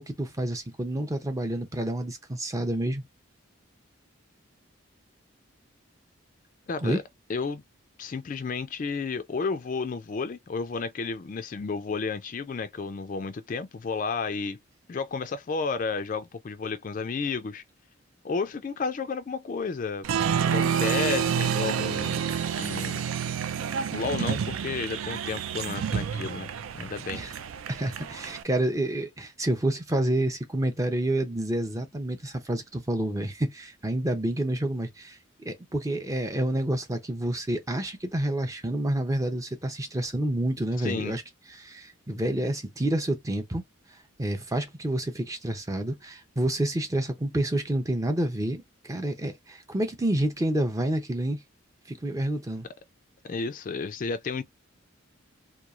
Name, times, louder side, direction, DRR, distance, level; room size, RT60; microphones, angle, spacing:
voice 1, 0.0-3.0 6.8-7.0 27.1-27.3 27.7-41.2 41.6-43.6 44.2-51.4 51.9-52.7, right 1 dB, 15° right, 0.5 m, -29 dB
voice 2, 6.7-7.0 7.3-7.6 8.0-14.6 14.9-17.6 18.2-20.1 20.4-22.2 22.6-23.1 23.9-27.2 40.8-41.2 53.2-54.4, left 4 dB, 40° left, 0.3 m, -32 dB
Applause, 20.0-28.4, right 7 dB, 85° right, 0.4 m, -29 dB
3.0 x 2.2 x 2.3 m
head